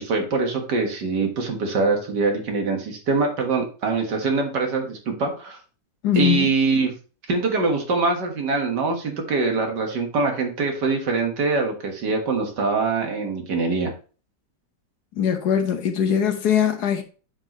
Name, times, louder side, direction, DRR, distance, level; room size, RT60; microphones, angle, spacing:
voice 1, 0.0-5.6 6.2-6.9 7.3-13.9, right 4 dB, 75° right, 2.2 m, -23 dB
voice 2, 6.0-6.5 15.1-17.0, left 9 dB, 65° left, 1.5 m, -21 dB
8.6 x 5.4 x 3.0 m
omnidirectional pair, 1.9 m